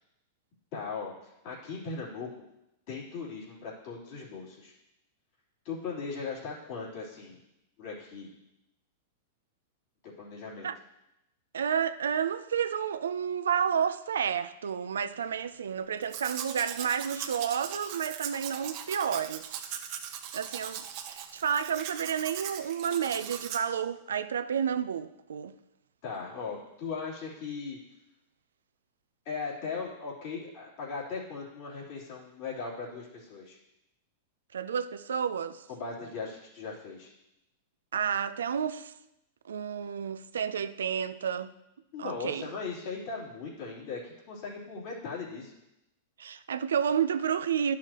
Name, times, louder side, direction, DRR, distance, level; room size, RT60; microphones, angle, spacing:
voice 1, 0.7-2.3 2.9-4.7 5.6-7.4 7.8-8.3 10.0-10.7 26.0-27.8 29.2-33.6 35.7-37.1 41.9-45.5, left 4 dB, 55° left, 3.2 m, -38 dB
voice 2, 11.5-19.5 20.3-25.5 34.5-35.6 37.9-38.9 39.5-41.5 42.0-42.5 46.2-47.8, right 8 dB, 85° right, 0.4 m, -30 dB
Domestic sounds home sounds, 16.0-23.6, right 9 dB, 50° right, 0.9 m, -40 dB
11.5 x 6.2 x 2.9 m
hypercardioid pair, 120°, 0 cm